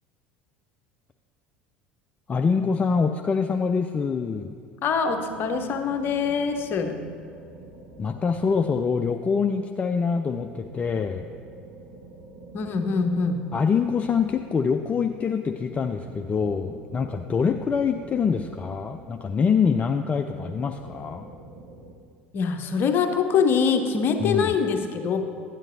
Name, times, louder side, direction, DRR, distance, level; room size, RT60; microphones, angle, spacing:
voice 1, 2.3-4.5 8.0-11.2 13.5-21.3 24.2-24.5, left 5 dB, 25° left, 5 dB, 0.3 m, -25 dB
voice 2, 4.8-7.0 12.5-13.4 22.3-25.2, left 5 dB, 40° left, 6 dB, 0.7 m, -24 dB
Underwater Dragon-like Monster Growl, 5.1-9.3 10.4-15.0 15.6-19.6 20.2-21.9, right 3 dB, 60° right, 1.1 m, -46 dB
11.0 x 8.9 x 2.7 m, 2.3 s
figure-of-eight pair, 70°, 6 cm